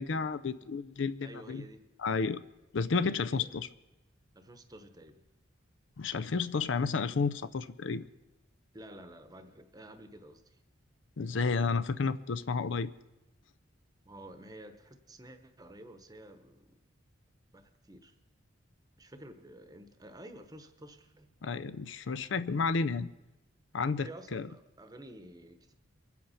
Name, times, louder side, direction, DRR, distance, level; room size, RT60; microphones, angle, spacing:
voice 1, 0.0-1.7 2.0-2.4 2.7-3.7 6.0-8.1 11.2-12.9 21.4-23.1 23.7-24.5, left 4 dB, 65° left, 0.5 m, -31 dB
voice 2, 1.2-1.9 3.2-3.5 4.3-5.2 8.7-10.6 14.0-16.8 17.5-18.1 19.0-21.4 24.0-25.7, right 1 dB, 20° right, 1.0 m, -51 dB
24.0 x 8.2 x 5.7 m
head